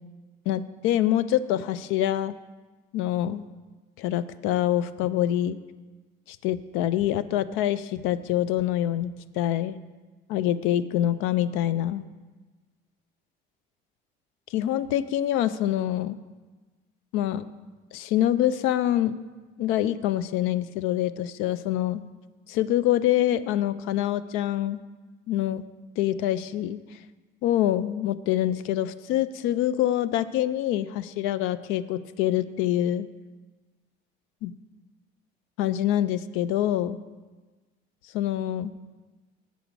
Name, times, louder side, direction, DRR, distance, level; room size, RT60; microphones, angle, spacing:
voice 1, 0.5-2.4 2.9-3.4 4.0-5.6 6.3-9.8 10.3-12.0 14.5-16.2 17.1-17.5 17.9-19.2 19.6-22.0 22.5-24.8 25.3-25.6 26.0-26.8 27.4-33.1 34.4-34.5 35.6-37.0 38.1-38.7, left 12 dB, 85° left, 15 dB, 0.4 m, -25 dB
7.4 x 7.0 x 5.1 m, 1.3 s
cardioid pair, 150°, 20 cm